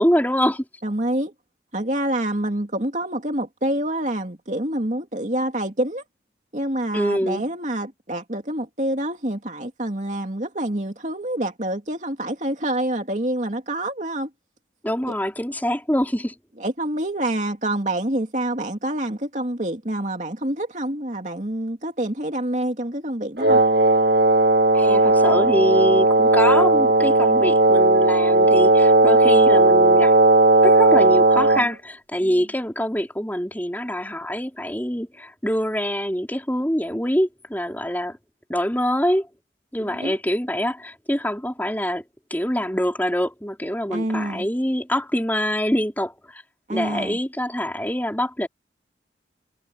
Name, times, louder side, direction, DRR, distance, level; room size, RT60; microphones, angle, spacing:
voice 1, 0.0-0.6 6.9-7.4 14.8-16.3 24.7-30.1 30.6-38.2 38.5-39.3 39.7-42.0 42.3-46.4 46.7-48.5, equal, 10° left, 4.3 m, -24 dB
voice 2, 0.8-1.3 1.7-6.1 6.5-14.3 16.6-23.6 32.2-32.4 39.8-40.2 43.9-44.5 46.7-47.2, right 1 dB, 40° right, 2.6 m, -27 dB
Wind instrument woodwind instrument, 23.4-31.7, right 2 dB, 65° right, 1.5 m, -16 dB
head